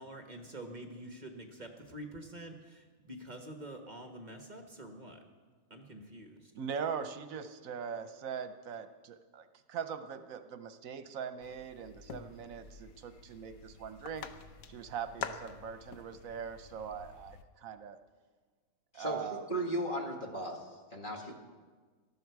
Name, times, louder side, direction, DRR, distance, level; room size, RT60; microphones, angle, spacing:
voice 1, 0.0-5.2 5.7-6.4, right 1 dB, 35° right, 4 dB, 1.3 m, -47 dB
voice 2, 6.5-14.3 14.7-18.0 18.9-19.4, right 7 dB, 75° right, 10 dB, 1.2 m, -41 dB
sound 1, 11.4-17.4, left 6 dB, 80° left, 1.3 m, -47 dB
voice 3, 18.9-21.3, right 1 dB, 35° left, 1 dB, 2.0 m, -36 dB
18.5 x 13.5 x 4.7 m, 1.5 s
omnidirectional pair, 1.4 m